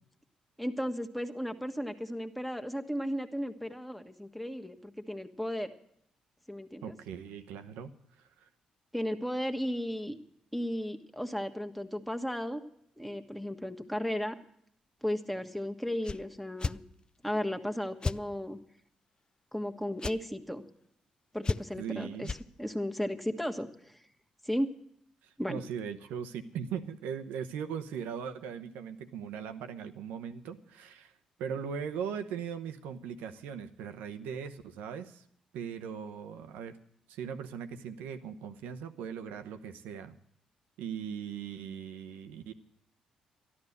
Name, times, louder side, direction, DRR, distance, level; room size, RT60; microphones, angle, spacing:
voice 1, 0.6-5.7 6.5-6.9 8.9-10.2 10.5-12.6 13.0-14.3 15.0-16.8 17.2-18.6 19.5-20.6 21.3-22.3 22.6-24.0 24.4-24.7 25.4-25.6, equal, ahead, 6 dB, 1.5 m, -35 dB
voice 2, 6.8-7.9 8.2-8.5 21.8-22.3 25.2-31.1 31.4-35.2 35.5-36.8 37.1-40.2 40.8-42.5, right 7 dB, 75° right, 9 dB, 0.9 m, -39 dB
sound 1, 16.0-16.2 16.6-16.8 18.0-18.2 20.0-20.2 21.4-21.8 22.2-22.4, left 4 dB, 30° left, 0.4 m, -32 dB
13.0 x 11.5 x 6.6 m, 0.69 s
hypercardioid pair, 45°, 3 cm